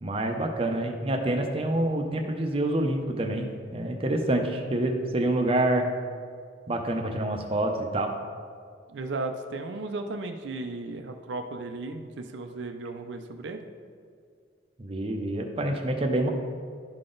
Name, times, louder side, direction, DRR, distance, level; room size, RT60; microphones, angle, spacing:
voice 1, 0.0-5.9 6.7-8.1 14.8-16.3, right 1 dB, 30° right, 3 dB, 0.6 m, -27 dB
voice 2, 8.9-13.6, right 2 dB, 80° right, 6 dB, 0.5 m, -35 dB
11.5 x 3.9 x 3.8 m, 2.1 s
head